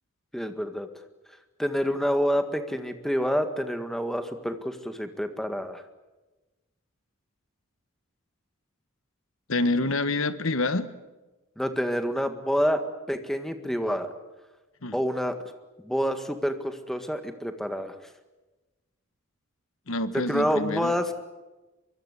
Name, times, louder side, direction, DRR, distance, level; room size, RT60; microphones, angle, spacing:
voice 1, 0.3-0.9 1.6-5.8 11.6-14.1 14.9-15.4 15.9-18.0 20.1-21.1, equal, ahead, 7 dB, 1.8 m, -28 dB
voice 2, 9.5-10.9 14.8-14.9 19.9-20.9, left 2 dB, 70° left, 12 dB, 1.4 m, -27 dB
24.5 x 24.0 x 8.3 m, 1.1 s
head